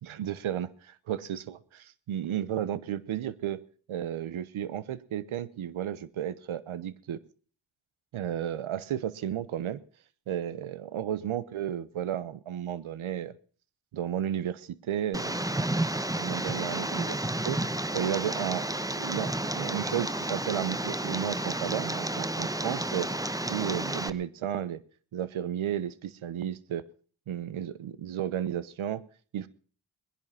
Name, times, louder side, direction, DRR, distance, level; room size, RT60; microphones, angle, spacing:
voice 1, 0.0-3.6 3.9-7.2 8.1-9.8 10.3-13.3 13.9-15.4 16.2-18.6 19.0-23.1 23.5-24.8 25.1-26.8 27.3-29.0 29.3-29.5, right 10 dB, 80° right, 18 dB, 1.1 m, -33 dB
Tick, 15.1-24.1, right 1 dB, 5° right, 1.0 m, -31 dB
20.0 x 11.0 x 5.7 m, 0.43 s
supercardioid pair, 45°, 47 cm